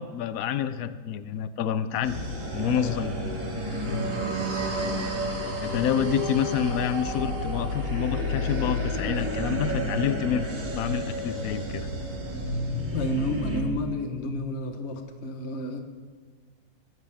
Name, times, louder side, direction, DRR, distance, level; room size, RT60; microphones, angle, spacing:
voice 1, 0.0-2.2 2.5-3.1 5.6-11.9, left 9 dB, 85° left, 13 dB, 0.7 m, -28 dB
sound 1, 2.0-13.6, equal, 40° right, 2.5 m, -30 dB
voice 2, 12.9-15.8, left 1 dB, 40° left, 6 dB, 1.2 m, -31 dB
21.0 x 11.0 x 3.5 m, 1.5 s
omnidirectional pair, 2.1 m